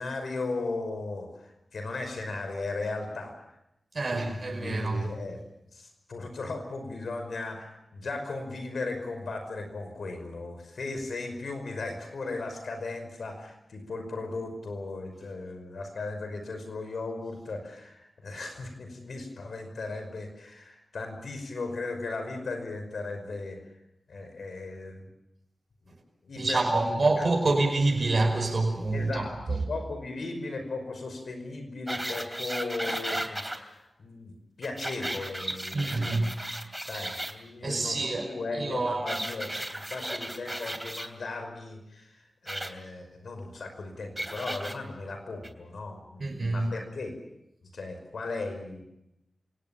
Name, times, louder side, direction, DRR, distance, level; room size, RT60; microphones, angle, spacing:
voice 1, 0.0-3.3 4.1-5.4 5.7-23.6 24.1-25.1 26.2-27.3 28.9-34.3 34.6-36.2 36.9-47.1 47.7-48.8, left 3 dB, 80° left, 5.4 m, -37 dB
voice 2, 3.9-5.1 26.4-29.2 35.7-36.3 36.9-37.2 37.6-38.3 38.5-39.2 46.2-46.7, right 2 dB, 60° right, 5.4 m, -27 dB
sound 1, 31.9-33.6 34.6-37.3 39.1-41.1 42.5-42.7 44.2-44.7 45.4-45.5, right 1 dB, 15° right, 3.1 m, -35 dB
27.5 x 18.5 x 7.2 m
cardioid pair, 40°, 0 cm